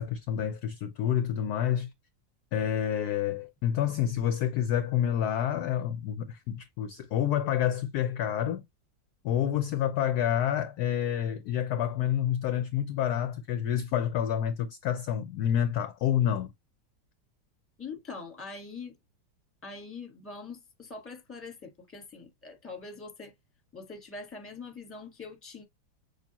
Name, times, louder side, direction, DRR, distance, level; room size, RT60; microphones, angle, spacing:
voice 1, 0.0-1.9 2.5-8.6 9.2-16.5, left 10 dB, 70° left, 0.9 m, -28 dB
voice 2, 17.8-18.9 19.6-23.3 23.7-25.6, left 4 dB, 10° left, 1.1 m, -43 dB
6.7 x 2.4 x 2.8 m
omnidirectional pair, 2.1 m